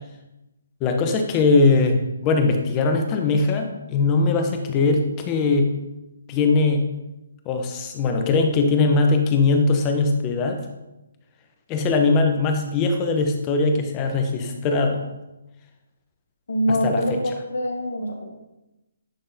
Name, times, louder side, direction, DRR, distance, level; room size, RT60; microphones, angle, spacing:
voice 1, 0.8-5.7 6.3-6.8 7.5-10.6 11.7-15.0 16.7-17.2, left 3 dB, 20° left, 4 dB, 0.7 m, -20 dB
voice 2, 16.5-17.1 17.5-18.2, equal, 85° left, 2 dB, 1.4 m, -24 dB
10.0 x 3.8 x 2.7 m, 0.97 s
hypercardioid pair, 155°, 0 cm